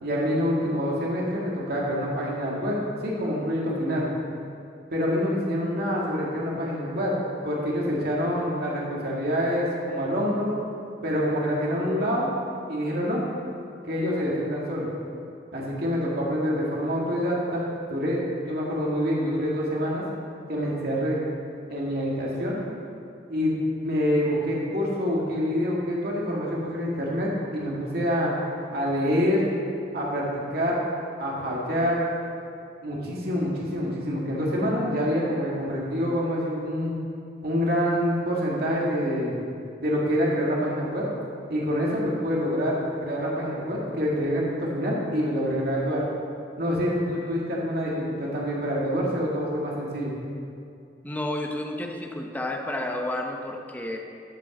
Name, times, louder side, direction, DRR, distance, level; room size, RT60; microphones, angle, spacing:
voice 1, 0.0-4.1 4.9-7.1 7.4-10.5 11.0-12.3 12.7-13.2 13.9-14.9 15.5-20.0 20.5-21.2 21.7-22.6 23.3-28.3 28.7-29.4 29.9-30.9 31.2-32.0 32.8-37.0 37.4-39.4 39.8-41.1 41.5-46.0 46.6-50.1, equal, 60° right, -4 dB, 2.1 m, -26 dB
voice 2, 51.0-54.0, left 1 dB, 10° left, 2 dB, 0.9 m, -31 dB
13.0 x 5.4 x 7.2 m, 2.5 s
head